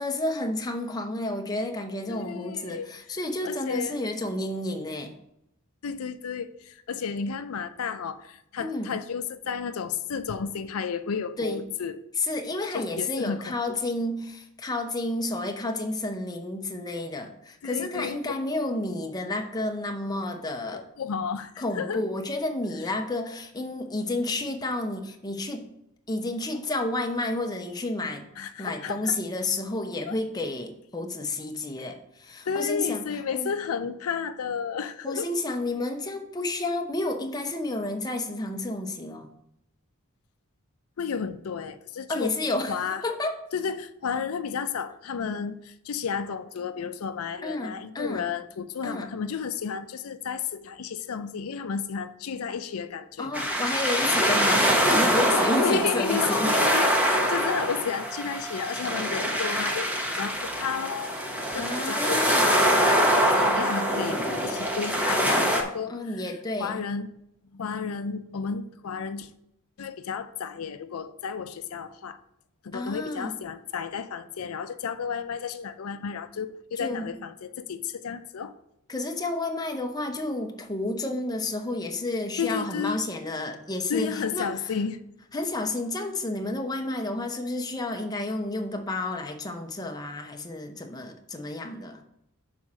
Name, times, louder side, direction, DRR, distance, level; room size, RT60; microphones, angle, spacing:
voice 1, 0.0-5.1 8.6-9.0 11.4-11.6 12.2-20.8 21.6-25.7 26.1-28.3 28.6-33.5 35.0-39.3 42.1-43.4 47.4-48.3 48.8-49.1 53.2-56.5 61.6-62.6 65.9-66.8 72.7-73.3 76.8-77.1 78.9-84.5 85.3-92.0, left 2 dB, 20° left, 4 dB, 0.7 m, -31 dB
voice 2, 2.1-2.9 3.4-4.0 5.8-12.0 12.7-13.8 17.6-18.2 20.7-22.0 28.4-29.2 30.1-30.2 32.5-35.3 41.0-42.3 42.7-43.0 43.5-53.5 54.3-54.4 55.3-61.2 61.5-66.2 66.6-67.1 67.5-69.3 69.8-72.2 72.6-78.5 82.4-83.0 83.9-85.0, left 6 dB, 80° left, 10 dB, 0.5 m, -32 dB
sound 1, 53.3-65.6, equal, 5° right, 1.0 m, -24 dB
6.4 x 4.2 x 6.1 m, 0.78 s
head